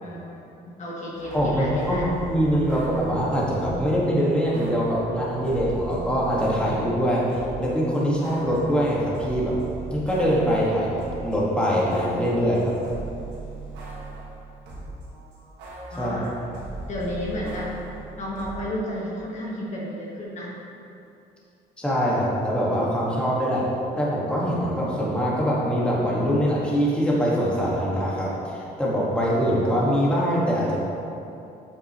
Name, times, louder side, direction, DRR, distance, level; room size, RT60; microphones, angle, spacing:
voice 1, 0.0-2.1 15.1-15.6 15.9-16.3 16.9-17.7 18.2-20.6, left 1 dB, 45° left, -4 dB, 1.4 m, -33 dB
sound 1, 1.1-4.0 4.5-7.7 7.9-15.0 15.3-18.5, right 2 dB, 90° right, 1.6 m, -39 dB
voice 2, 1.3-2.0 2.3-7.3 7.6-9.6 9.9-12.7 16.0-16.2 21.8-23.7 24.0-30.8, equal, 5° left, -6 dB, 1.7 m, -23 dB
8.3 x 6.7 x 3.0 m, 2.7 s
cardioid pair, 110°, 17 cm